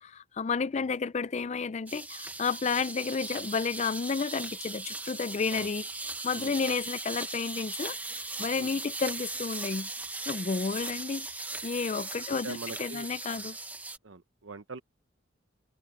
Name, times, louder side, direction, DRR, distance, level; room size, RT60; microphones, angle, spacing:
voice 1, 0.0-5.8 6.2-8.0 8.4-9.9 10.3-11.3 11.6-13.6, left 5 dB, 35° left, 0.4 m, -31 dB
sound 1, 1.9-14.0, right 2 dB, 10° right, 0.9 m, -38 dB
voice 2, 6.3-6.7 8.6-8.7 12.3-13.1 14.0-14.8, right 3 dB, 80° right, 1.0 m, -43 dB
head